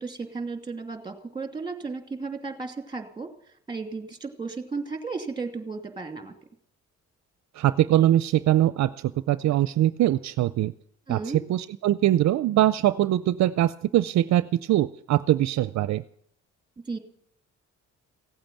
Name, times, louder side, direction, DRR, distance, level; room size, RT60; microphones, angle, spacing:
voice 1, 0.0-3.3 3.7-6.3 11.1-11.4 16.9-17.0, right 4 dB, 15° right, 5 dB, 2.7 m, -34 dB
voice 2, 7.6-10.7 11.1-16.0, right 13 dB, 65° right, 15 dB, 0.5 m, -22 dB
16.5 x 8.8 x 9.2 m, 0.68 s
cardioid pair, 90°, 30 cm